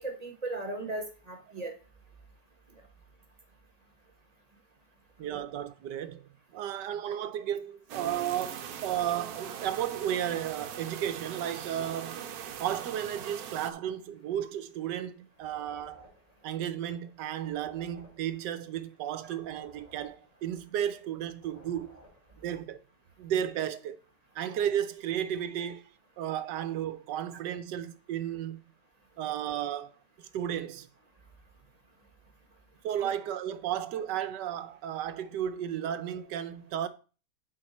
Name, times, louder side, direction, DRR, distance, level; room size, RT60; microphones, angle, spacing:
voice 1, 0.0-1.7 5.2-5.4 33.0-33.1, right 2 dB, 25° right, 1.2 m, -37 dB
voice 2, 5.2-12.2 12.6-16.1 16.4-21.9 22.4-22.8 23.2-24.0 24.3-25.8 26.2-28.6 29.2-30.9 32.8-36.9, right 10 dB, 85° right, 1.4 m, -33 dB
sound 1, 7.9-13.7, right 8 dB, 65° right, 1.2 m, -41 dB
sound 2, 15.3-22.7, equal, 20° left, 4.2 m, -58 dB
8.9 x 5.0 x 4.3 m
omnidirectional pair, 1.8 m